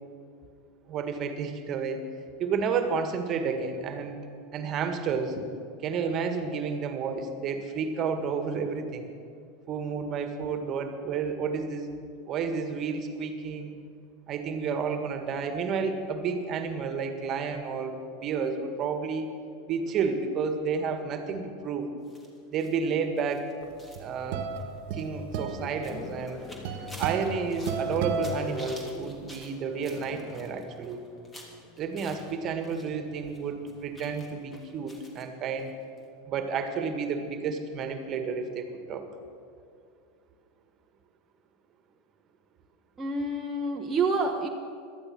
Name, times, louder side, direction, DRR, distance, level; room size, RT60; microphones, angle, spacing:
voice 1, 0.9-2.1 2.4-4.2 4.5-5.4 5.8-9.1 9.7-11.9 12.3-13.8 14.3-19.3 19.7-21.9 22.5-23.5 24.0-24.5 24.9-26.4 27.0-31.0 31.8-35.7 36.3-39.1, right 5 dB, 40° right, 7 dB, 1.8 m, -31 dB
sound 1, 22.0-32.9 33.1-35.2 35.6-35.7 36.0-36.1, equal, 15° left, 3.2 m, -51 dB
sound 2, 23.7-29.1, right 5 dB, 60° right, 1.5 m, -34 dB
sound 3, 24.8-34.8, left 3 dB, 35° left, 1.6 m, -44 dB
voice 2, 43.0-44.5, right 3 dB, 15° right, 0 dB, 1.3 m, -28 dB
17.5 x 12.5 x 6.2 m, 2.4 s
hypercardioid pair, 85°, 0 cm